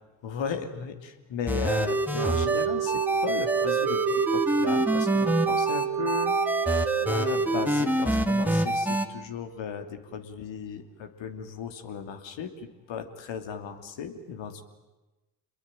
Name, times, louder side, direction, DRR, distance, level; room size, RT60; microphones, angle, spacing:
voice 1, 0.2-14.6, left 6 dB, 65° left, 7 dB, 3.0 m, -36 dB
sound 1, 1.5-9.1, right 1 dB, 5° right, 2.1 m, -26 dB
Wind instrument woodwind instrument, 2.1-7.8, right 10 dB, 45° right, 0.9 m, -29 dB
27.0 x 21.5 x 9.1 m, 1.1 s
hypercardioid pair, 50°, 49 cm